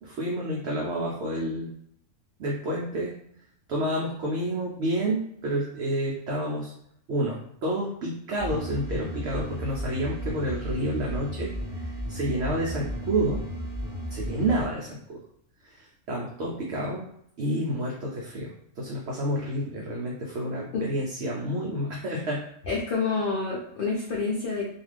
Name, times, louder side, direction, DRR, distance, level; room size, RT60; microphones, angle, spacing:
voice 1, 0.0-1.7 2.4-3.2 3.7-6.7 7.1-13.4 14.1-15.2 15.6-17.0 17.4-22.4, right 1 dB, 65° right, -3 dB, 0.7 m, -29 dB
sound 1, 8.4-14.6, equal, 5° right, 0.7 m, -34 dB
voice 2, 22.7-24.7, left 4 dB, 65° left, -4 dB, 0.5 m, -28 dB
2.5 x 2.3 x 3.2 m, 0.70 s
omnidirectional pair, 1.5 m